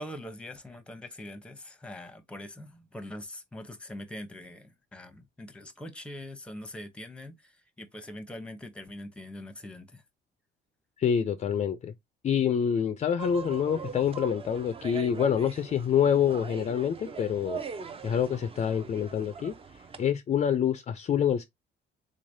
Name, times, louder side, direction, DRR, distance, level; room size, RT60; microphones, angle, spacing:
voice 1, 0.0-10.0, left 1 dB, 5° left, 0.7 m, -43 dB
voice 2, 11.0-11.9 12.2-17.6 18.0-19.5 20.0-21.4, left 8 dB, 35° left, 0.4 m, -26 dB
sound 1, 13.2-20.0, right 6 dB, 30° right, 0.6 m, -41 dB
3.8 x 3.2 x 2.6 m
cardioid pair, 115°, 19 cm